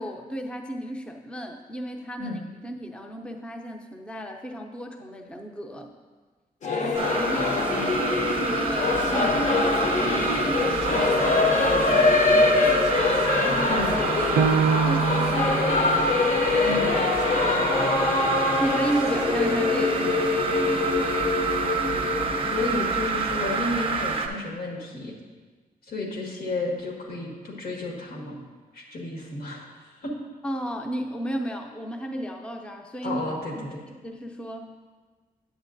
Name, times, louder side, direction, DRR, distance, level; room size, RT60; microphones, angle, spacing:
voice 1, 0.0-5.9 6.8-7.9 8.2-13.1 13.4-16.4 17.4-17.7 18.5-21.0 30.4-33.2 33.6-33.7 34.0-35.0, equal, 5° left, 3 dB, 0.5 m, -34 dB
Singing / Musical instrument, 6.6-22.9, left 3 dB, 50° left, 0.6 m, -24 dB
sound 1, 6.9-24.3, right 4 dB, 35° right, 0.6 m, -28 dB
voice 2, 7.7-8.1 13.7-14.0 16.6-16.9 22.5-25.1 25.9-28.4 28.7-30.1 33.0-33.8, left 2 dB, 90° left, -2 dB, 1.7 m, -32 dB
Piano, 14.4-19.5 20.0-20.1 20.7-21.2, right 6 dB, 80° right, 0.4 m, -29 dB
8.9 x 7.6 x 2.5 m, 1.4 s
wide cardioid pair, 135°, 16 cm